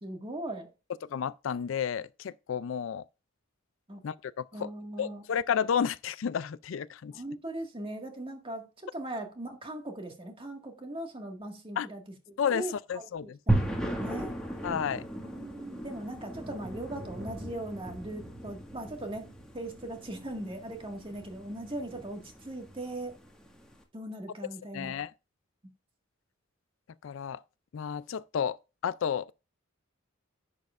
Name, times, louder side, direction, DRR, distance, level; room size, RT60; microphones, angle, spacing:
voice 1, 0.0-0.7 3.9-4.0 4.5-5.2 7.1-12.0 12.3-13.1 13.5-14.4 15.2-23.2 23.9-24.9, right 1 dB, 25° right, 1.8 m, -39 dB
voice 2, 1.1-3.0 4.0-4.7 5.0-7.1 11.8-11.9 12.4-12.6 12.9-13.4 14.6-15.0 24.7-25.1 27.0-27.4 27.7-28.6 28.8-29.3, left 7 dB, 65° left, 0.4 m, -31 dB
sound 1, 13.5-23.7, right 1 dB, 5° left, 1.7 m, -36 dB
10.5 x 7.3 x 2.5 m
head